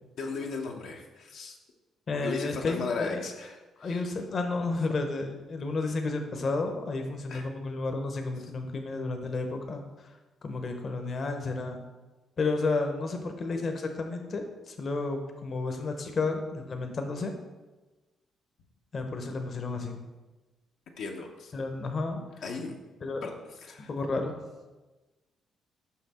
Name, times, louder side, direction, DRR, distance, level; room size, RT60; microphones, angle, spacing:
voice 1, 0.2-1.6 2.1-4.1 7.3-7.5 21.0-21.5 22.4-22.8 23.2-23.3 23.6-23.9, left 4 dB, 75° left, 1 dB, 0.8 m, -36 dB
voice 2, 2.1-3.2 3.8-10.2 10.4-11.8 12.4-17.3 18.9-20.0 21.5-22.2 23.0-23.2 23.8-24.4, left 3 dB, 45° left, 5 dB, 0.8 m, -32 dB
5.7 x 5.5 x 4.2 m, 1.2 s
cardioid pair, 90°, 0 cm